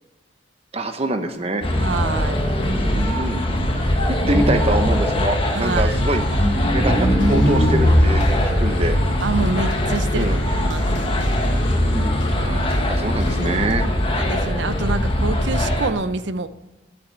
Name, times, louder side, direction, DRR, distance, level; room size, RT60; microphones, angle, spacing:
voice 1, 0.7-1.6 3.0-3.6 3.9-6.2 6.7-8.3 8.6-8.9 10.1-10.4 11.7-13.9, right 2 dB, 35° right, 7 dB, 1.0 m, -25 dB
sound 1, 1.6-15.9, left 1 dB, 30° left, 1.1 m, -22 dB
sound 2, 1.7-3.2 3.6-3.7 3.9-5.5 6.1-9.2, equal, 10° left, 1.5 m, -22 dB
voice 2, 1.8-2.8 5.5-6.0 9.2-10.9 12.4-13.0 14.2-16.5, right 3 dB, 75° right, 13 dB, 0.6 m, -27 dB
sound 3, 5.9-13.7, left 1 dB, 85° left, 1.2 m, -32 dB
8.8 x 7.9 x 8.8 m, 1.2 s
head